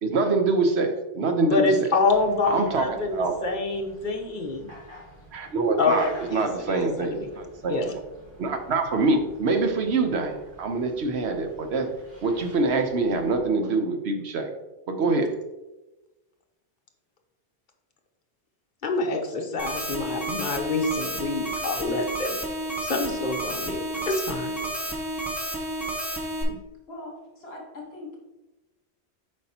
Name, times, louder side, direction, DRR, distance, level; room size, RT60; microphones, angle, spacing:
voice 1, 0.0-1.9 2.4-3.4 5.3-8.0 8.4-11.9 12.2-14.5 14.9-15.4, right 3 dB, 70° right, 5 dB, 1.1 m, -25 dB
voice 2, 1.4-4.7 5.8-6.9 7.2-7.3 7.7-7.8 18.8-22.4 22.8-23.8 24.1-24.5 26.5-26.6, left 3 dB, 45° left, 2 dB, 1.1 m, -26 dB
sound 1, 2.1-13.4, equal, 50° right, 1.9 m, -49 dB
sound 2, 19.6-26.4, right 1 dB, ahead, 1.1 m, -31 dB
voice 3, 26.9-28.4, left 2 dB, 65° left, -1 dB, 1.6 m, -41 dB
8.0 x 5.2 x 2.9 m, 1.0 s
omnidirectional pair, 1.2 m